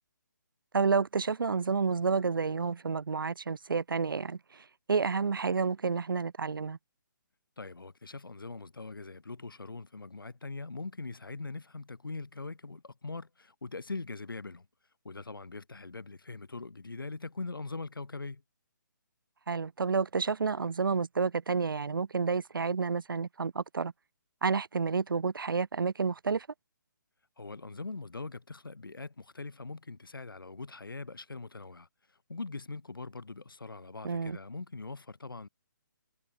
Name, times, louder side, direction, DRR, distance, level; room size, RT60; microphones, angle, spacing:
voice 1, 0.7-4.6 4.9-6.8 19.5-23.9 24.4-26.5 34.0-34.4, right 5 dB, 80° right, 0.9 m, -30 dB
voice 2, 7.6-14.7 15.0-18.4 27.4-31.9 32.3-35.5, left 3 dB, 90° left, 4.0 m, -42 dB
hypercardioid pair, 150°, 11 cm